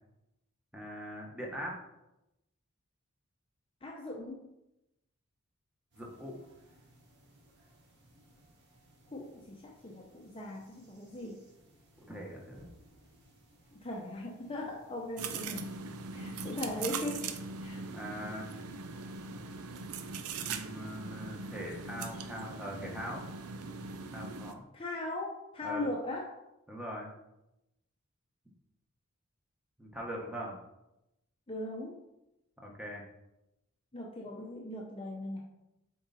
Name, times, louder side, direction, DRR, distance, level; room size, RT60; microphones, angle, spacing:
voice 1, 0.7-1.8 6.0-6.4 12.1-12.7 17.9-18.5 20.3-23.2 24.1-24.6 25.6-25.9 26.7-27.1 29.8-30.6 32.6-33.0, equal, 5° right, -1 dB, 1.3 m, -41 dB
voice 2, 3.8-4.5 9.1-11.4 13.7-15.7 16.1-17.3 17.6-17.8 24.7-26.3 31.5-32.0 33.9-35.4, left 1 dB, 25° left, -1 dB, 0.7 m, -39 dB
sound 1, 5.9-19.4, right 1 dB, 50° right, 2.4 m, -63 dB
sound 2, 15.2-24.5, right 4 dB, 90° right, 0.6 m, -41 dB
7.7 x 4.7 x 4.2 m, 0.90 s
head